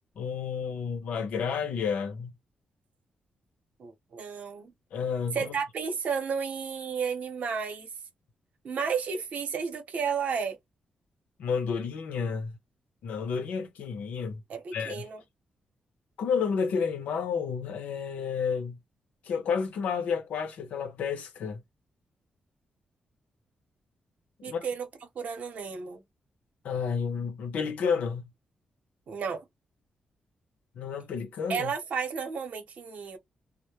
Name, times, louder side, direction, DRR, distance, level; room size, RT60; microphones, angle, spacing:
voice 1, 0.2-2.3 4.9-5.5 11.4-12.5 13.0-14.4 14.7-15.0 16.2-18.8 19.2-21.6 24.4-24.6 26.6-28.2 30.7-31.7, left 6 dB, 85° left, 0.7 m, -31 dB
voice 2, 3.8-4.7 5.3-7.9 8.6-10.6 14.5-15.2 24.4-24.9 25.1-26.0 29.1-29.4 31.5-33.2, right 6 dB, 70° right, 0.9 m, -32 dB
2.2 x 2.1 x 2.9 m
cardioid pair, 80°, 3 cm